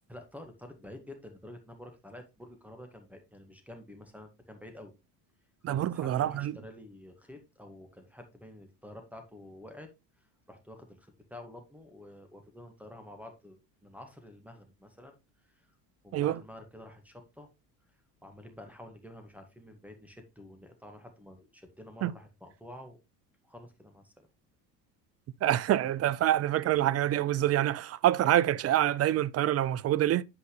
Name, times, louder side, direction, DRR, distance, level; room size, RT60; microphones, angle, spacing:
voice 1, 0.1-4.9 5.6-9.9 10.2-13.6 13.8-15.8 16.0-17.5 18.2-23.0 23.4-24.3, left 1 dB, 5° right, 1.9 m, -49 dB
voice 2, 5.6-6.5 16.1-16.4 22.0-22.1 25.4-30.2, right 12 dB, 35° right, 0.4 m, -26 dB
8.5 x 5.2 x 3.2 m
supercardioid pair, 80°, 49 cm